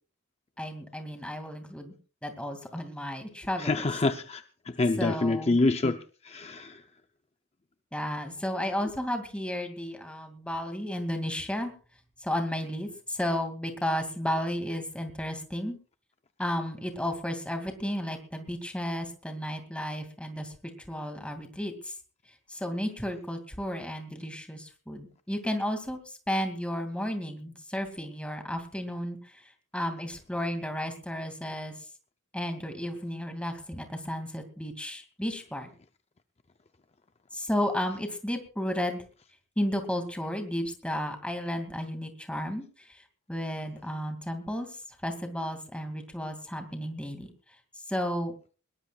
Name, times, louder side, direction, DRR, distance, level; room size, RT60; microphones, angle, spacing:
voice 1, 0.6-1.9 2.2-3.8 5.0-5.6 7.9-11.7 12.2-15.8 16.4-20.5 20.9-21.9 22.5-31.7 32.3-35.7 37.3-39.0 39.6-43.0 43.3-47.3 47.9-48.3, equal, 5° left, 6 dB, 2.4 m, -33 dB
voice 2, 3.6-6.0 6.2-6.8, left 2 dB, 30° left, 8 dB, 0.6 m, -26 dB
21.0 x 18.5 x 2.4 m, 0.36 s
head